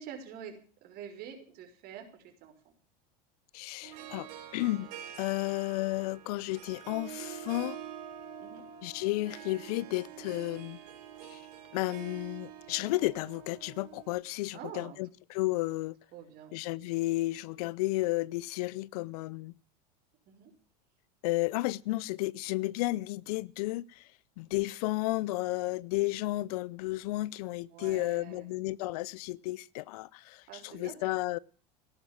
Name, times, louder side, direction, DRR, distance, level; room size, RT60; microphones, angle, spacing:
voice 1, 0.0-2.7 8.4-8.6 14.5-15.0 16.1-16.5 20.3-20.5 27.7-28.5 30.5-31.1, right 8 dB, 50° right, 5.6 m, -46 dB
voice 2, 3.5-4.3 4.5-4.9 5.2-7.8 8.8-10.8 11.3-11.4 11.7-16.0 16.5-19.5 21.2-24.1 24.4-31.4, left 19 dB, 70° left, 0.7 m, -32 dB
Harp, 3.8-14.1, right 10 dB, 75° right, 5.2 m, -46 dB
17.0 x 11.0 x 7.4 m
hypercardioid pair, 100°, 20 cm